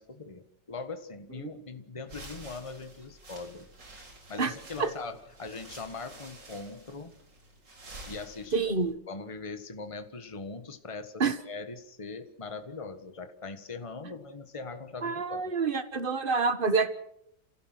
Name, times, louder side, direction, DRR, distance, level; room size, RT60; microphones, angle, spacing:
voice 1, 0.0-3.7 4.3-7.1 8.1-8.7 9.1-15.5, left 4 dB, 20° left, 8 dB, 1.4 m, -41 dB
sound 1, 2.0-8.9, right 2 dB, 90° right, 4.6 m, -50 dB
voice 2, 8.5-8.9 11.2-11.3 15.0-16.9, right 4 dB, 30° right, 10 dB, 1.5 m, -27 dB
29.5 x 16.5 x 6.2 m, 0.75 s
omnidirectional pair, 1.9 m